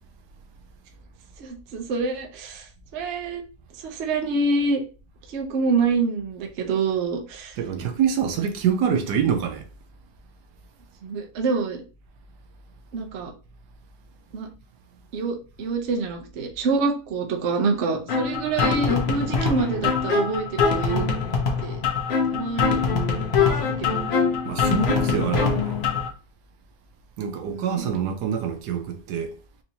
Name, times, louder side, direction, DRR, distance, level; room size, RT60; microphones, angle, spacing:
voice 1, 1.4-2.7 2.9-3.4 3.8-4.8 5.3-7.6 11.0-11.8 12.9-13.3 14.3-14.5 15.1-21.0 21.6-21.8 22.3-22.8 23.7-23.9 27.5-27.9, right 4 dB, 55° right, 0.9 m, -26 dB
voice 2, 7.6-9.6 24.4-25.8 27.2-29.3, right 8 dB, 85° right, 1.3 m, -25 dB
sound 1, 18.1-26.1, left 5 dB, 50° left, 0.8 m, -23 dB
4.4 x 2.7 x 2.8 m
omnidirectional pair, 1.7 m